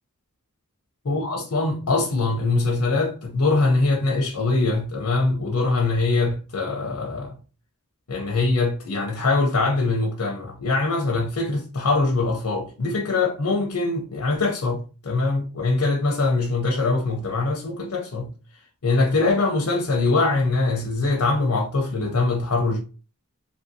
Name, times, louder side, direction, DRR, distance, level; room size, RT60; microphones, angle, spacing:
voice 1, 1.1-7.3 8.1-18.3 18.8-22.8, left 3 dB, 75° left, 0.6 m, -23 dB
2.8 x 2.7 x 2.6 m
head